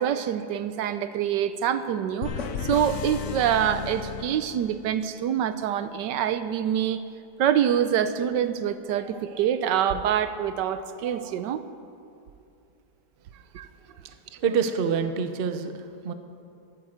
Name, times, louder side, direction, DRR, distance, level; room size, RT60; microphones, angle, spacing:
voice 1, 0.0-2.3 2.6-7.0 7.4-11.6 13.5-13.7, right 9 dB, 80° right, 11 dB, 1.3 m, -25 dB
sound 1, 2.2-5.0, left 6 dB, 55° left, 0.9 m, -34 dB
voice 2, 13.9-16.1, right 6 dB, 50° right, 8 dB, 0.7 m, -28 dB
12.5 x 9.3 x 8.0 m, 2.5 s
omnidirectional pair, 1.9 m